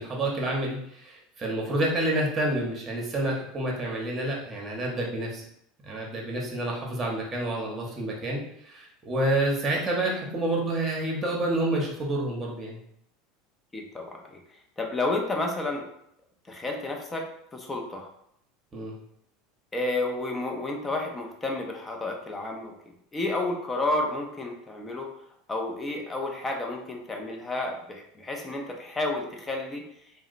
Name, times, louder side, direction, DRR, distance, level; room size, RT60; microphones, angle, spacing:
voice 1, 0.0-5.4 5.8-12.8 18.7-18.9, right 1 dB, 30° right, -2 dB, 0.8 m, -28 dB
voice 2, 13.7-14.4 14.8-15.9 16.5-17.3 17.5-18.1 19.7-22.8 23.1-25.1 25.5-29.8, left 2 dB, 20° left, 1 dB, 0.5 m, -31 dB
2.7 x 2.1 x 2.5 m, 0.75 s
hypercardioid pair, 90°, 0 cm